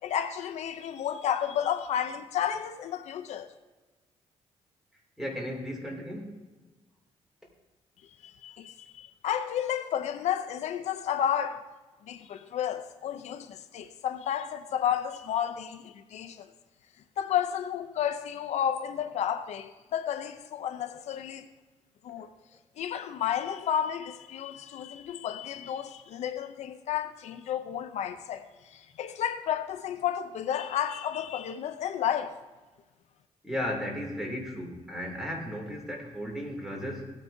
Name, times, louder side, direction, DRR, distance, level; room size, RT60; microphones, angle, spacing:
voice 1, 0.0-3.5 8.2-11.6 12.1-16.5 17.2-21.5 22.0-22.3 22.8-32.4, left 9 dB, 65° left, 0.5 m, -32 dB
voice 2, 5.2-6.4 22.2-22.3 33.4-37.1, equal, 5° right, 2.5 m, -35 dB
16.5 x 9.2 x 2.6 m
cardioid pair, 145°, 12 cm